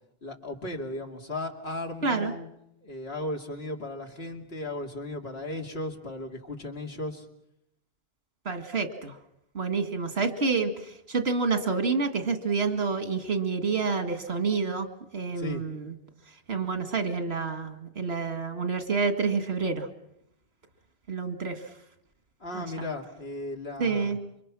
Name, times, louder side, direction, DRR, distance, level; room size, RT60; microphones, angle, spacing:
voice 1, 0.2-2.5 2.8-7.3 15.4-15.6 22.4-24.2, left 2 dB, 80° left, 2 dB, 2.9 m, -36 dB
voice 2, 8.5-9.1 9.6-10.7 11.1-14.9 15.1-15.9 16.5-19.9 21.1-21.6 22.5-22.6 23.8-24.2, right 4 dB, 80° right, 7 dB, 2.2 m, -28 dB
28.0 x 24.5 x 6.2 m, 0.78 s
omnidirectional pair, 1.0 m